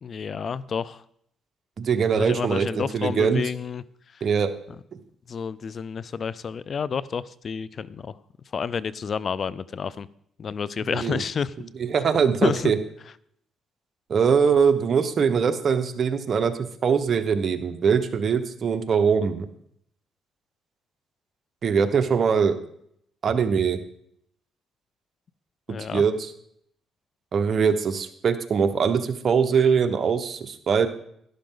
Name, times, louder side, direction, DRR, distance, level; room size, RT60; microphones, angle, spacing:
voice 1, 0.0-1.0 2.2-3.8 5.3-8.2 8.5-10.1 10.4-11.5 12.4-12.7 25.7-26.0, left 6 dB, 50° left, 19 dB, 0.4 m, -29 dB
voice 2, 1.8-3.5 4.2-4.5 10.9-11.2 11.8-12.8 14.1-16.5 16.8-19.5 21.6-22.6 23.2-23.8 25.9-26.3 27.3-30.9, right 6 dB, 50° right, 8 dB, 1.2 m, -22 dB
11.5 x 11.5 x 3.9 m, 0.69 s
cardioid pair, 90°, 0 cm